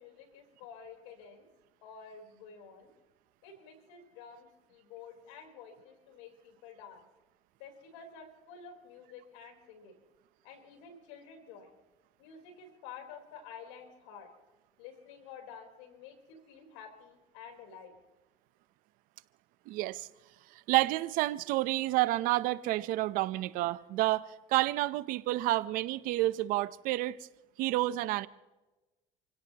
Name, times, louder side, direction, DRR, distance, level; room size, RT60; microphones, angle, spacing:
voice 1, 0.0-1.5 1.8-2.9 3.4-7.0 7.6-10.0 10.4-11.7 12.2-14.3 14.8-17.9, left 6 dB, 90° left, 3 dB, 4.1 m, -50 dB
voice 2, 19.7-20.1 20.5-27.2 27.6-28.3, right 17 dB, 75° right, 16 dB, 0.8 m, -29 dB
28.5 x 17.0 x 3.0 m, 1.1 s
supercardioid pair, 95°, 15 cm